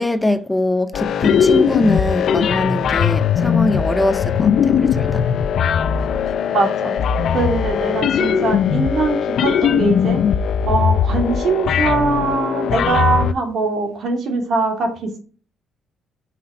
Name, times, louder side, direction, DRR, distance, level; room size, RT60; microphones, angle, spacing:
voice 1, 0.0-5.2, left 1 dB, 10° left, 0.5 m, -22 dB
sound 1, 0.9-13.3, left 7 dB, 70° left, 0.4 m, -19 dB
voice 2, 6.5-6.9 7.3-10.2 10.7-15.2, right 3 dB, 65° right, 2.4 m, -21 dB
5.8 x 4.1 x 5.6 m
cardioid pair, 90°, 0 cm